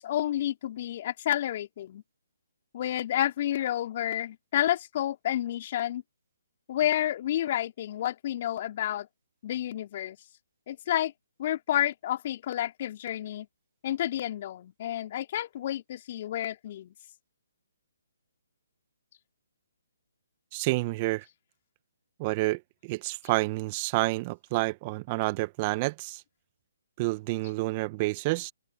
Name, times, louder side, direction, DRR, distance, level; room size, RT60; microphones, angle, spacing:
voice 1, 0.0-2.0 2.7-6.0 6.7-9.1 9.4-10.2 10.7-11.1 11.4-13.5 13.8-16.9, left 12 dB, 40° left, 3.6 m, -30 dB
voice 2, 20.5-21.2 22.2-26.2 27.0-28.5, right 22 dB, 30° right, 1.5 m, -29 dB
open air
figure-of-eight pair, 140°, 0 cm